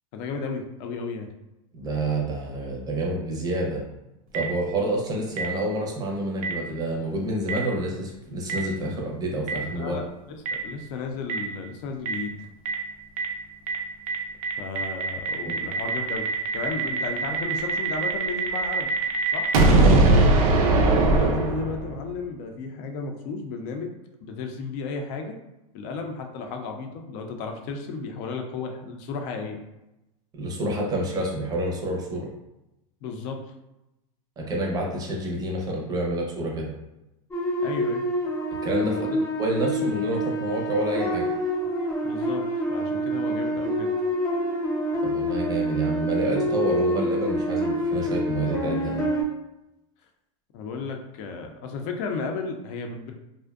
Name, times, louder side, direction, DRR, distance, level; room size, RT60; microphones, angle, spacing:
voice 1, 0.1-1.3 9.8-10.1 10.6-12.3 14.6-16.3 16.5-18.9 19.3-19.5 21.1-23.9 24.2-25.4 25.7-29.6 33.0-33.4 37.6-38.0 38.9-39.2 42.0-42.4 42.7-43.9 50.5-53.1, left 4 dB, 55° left, 4 dB, 0.5 m, -33 dB
voice 2, 1.7-3.8 4.3-10.0 15.5-15.6 19.7-20.3 30.3-32.3 34.4-36.7 38.6-41.3 45.0-49.0, right 1 dB, 20° right, -1 dB, 0.6 m, -28 dB
Boom, 4.3-4.4 5.4-5.5 6.4-6.5 7.5-7.6 8.5-8.6 9.5-9.6 10.5-10.6 11.3-11.4 12.1-12.2 12.7-12.8 13.2-13.3 13.7-13.8 14.1-14.2 14.4-22.0, right 2 dB, 90° right, 0.5 m, -21 dB
sound 1, 37.3-49.2, equal, 15° left, 0.7 m, -27 dB
2.5 x 2.1 x 2.3 m, 0.94 s
supercardioid pair, 130°, 18 cm